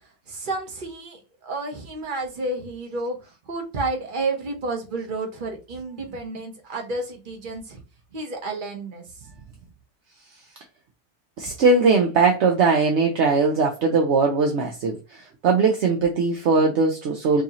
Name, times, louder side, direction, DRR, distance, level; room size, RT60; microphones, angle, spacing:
voice 1, 0.3-3.2 3.5-7.8 8.1-9.0, right 2 dB, 40° right, 1.2 m, -30 dB
voice 2, 11.4-17.4, right 4 dB, 65° right, 0.9 m, -20 dB
4.7 x 2.7 x 2.9 m
omnidirectional pair, 1.3 m